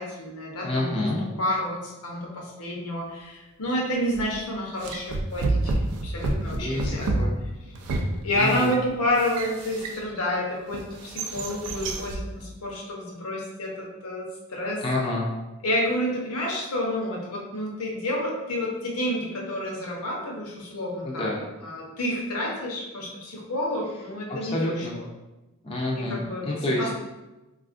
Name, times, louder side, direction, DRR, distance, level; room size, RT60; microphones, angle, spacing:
voice 1, 0.0-5.7 6.0-7.1 8.2-14.8 15.6-25.0 25.9-26.5 26.8-26.9, left 1 dB, 90° left, -2 dB, 0.7 m, -29 dB
voice 2, 0.6-1.2 6.5-7.4 8.3-8.7 14.8-15.3 21.0-21.4 24.3-25.0 25.6-26.9, left 1 dB, 25° left, -3 dB, 0.4 m, -28 dB
sound 1, 4.1-4.4 4.8-10.3 10.7-12.3, right 2 dB, 85° right, 0.4 m, -29 dB
3.4 x 2.4 x 2.4 m, 1.0 s
head